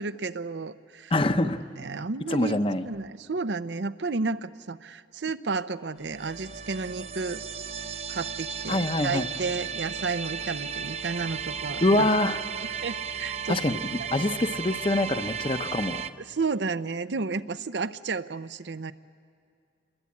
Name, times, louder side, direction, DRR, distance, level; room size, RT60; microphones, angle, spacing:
voice 1, 0.0-1.1 1.4-1.5 1.8-2.6 2.8-7.4 8.1-12.1 12.8-13.6 14.0-14.1 16.2-18.9, right 4 dB, 75° right, 13 dB, 0.7 m, -32 dB
voice 2, 1.1-1.6 2.3-2.8 8.7-9.3 11.8-12.4 13.5-13.8 14.1-16.0, left 2 dB, 30° left, 10 dB, 0.8 m, -24 dB
sound 1, 6.0-16.1, right 6 dB, 35° right, 0.6 m, -35 dB
28.0 x 21.5 x 8.5 m, 2.3 s
head